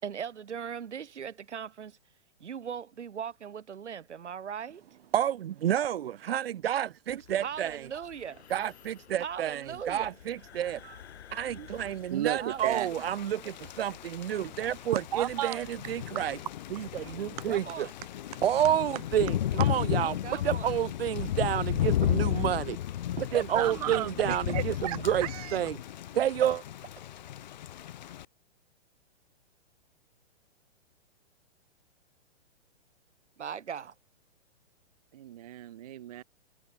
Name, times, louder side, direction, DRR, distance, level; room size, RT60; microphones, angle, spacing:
voice 1, 0.0-2.0 2.4-4.8 7.4-8.4 9.2-10.1 12.4-13.0 17.5-17.9 20.2-20.7 23.3-23.4 23.9-24.0 26.4-26.5 33.4-33.9, right 7 dB, 80° right, 5.2 m, -39 dB
voice 2, 5.1-7.9 8.5-11.0 11.3-16.4 16.7-17.9 18.4-20.2 20.4-22.8 23.2-25.8 26.1-26.6, right 10 dB, 60° right, 1.1 m, -30 dB
sound 1, 7.1-15.2, left 9 dB, 70° left, 4.0 m, -53 dB
sound 2, 11.7-22.4, left 23 dB, 25° left, 4.7 m, -59 dB
voice 3, 12.1-12.9 14.9-15.6 17.4-17.5 23.5-25.6 35.1-36.2, right 13 dB, 35° right, 0.6 m, -34 dB
Thunder / Rain, 12.6-28.3, left 12 dB, 40° left, 0.6 m, -34 dB
hypercardioid pair, 165°, 34 cm